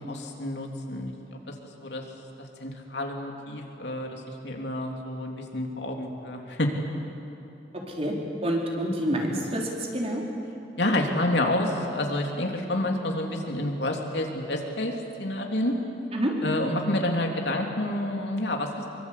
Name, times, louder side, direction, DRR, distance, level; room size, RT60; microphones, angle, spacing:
voice 1, 0.1-1.1 1.5-2.0 2.6-6.7 10.8-14.9 15.2-15.7 16.4-18.9, left 1 dB, 75° left, 2 dB, 3.1 m, -29 dB
voice 2, 8.4-10.2 16.1-16.3, right 1 dB, 35° right, -1 dB, 4.2 m, -27 dB
24.5 x 23.5 x 8.5 m, 2.8 s
head